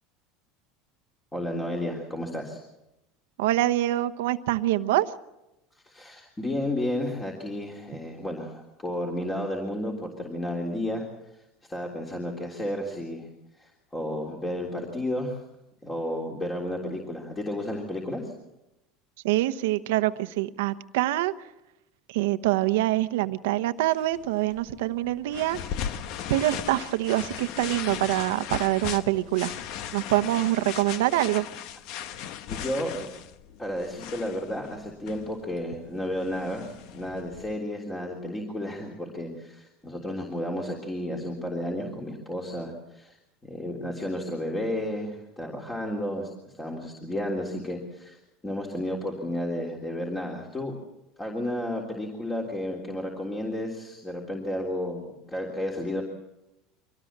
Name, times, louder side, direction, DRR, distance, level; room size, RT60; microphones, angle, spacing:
voice 1, 1.3-2.6 5.7-11.1 11.7-13.3 13.6-15.4 15.8-18.3 32.5-33.1 33.6-43.2 43.4-46.3 46.6-50.7 51.2-56.0, left 1 dB, 15° left, 0 dB, 3.5 m, -32 dB
voice 2, 3.4-5.1 19.2-21.3 22.1-25.6 26.3-29.5 29.9-31.5, right 16 dB, 85° right, 12 dB, 1.0 m, -25 dB
sound 1, 23.9-37.5, left 9 dB, 60° left, 1.3 m, -38 dB
24.5 x 18.5 x 7.5 m, 0.93 s
supercardioid pair, 125°, 0 cm